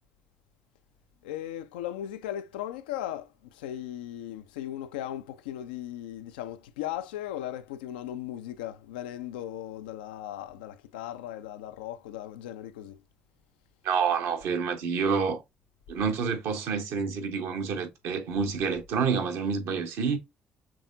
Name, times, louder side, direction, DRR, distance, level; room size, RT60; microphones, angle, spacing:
voice 1, 1.2-3.3 3.6-13.0, left 12 dB, 70° left, 0.4 m, -37 dB
voice 2, 13.8-15.4 15.9-20.2, right 5 dB, 60° right, 1.0 m, -28 dB
6.0 x 3.4 x 2.5 m
figure-of-eight pair, 45°, 5 cm